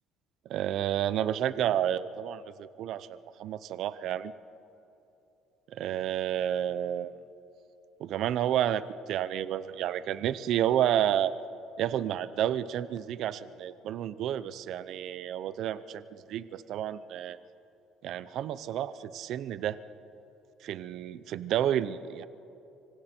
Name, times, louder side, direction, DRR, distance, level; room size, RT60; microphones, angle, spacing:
voice 1, 0.5-4.3 5.7-7.1 8.0-11.3 11.8-16.0 16.3-17.4 18.0-19.8 20.6-22.3, right 10 dB, 55° right, 14 dB, 0.6 m, -30 dB
25.5 x 25.5 x 4.4 m, 2.8 s
cardioid pair, 160°, 0 cm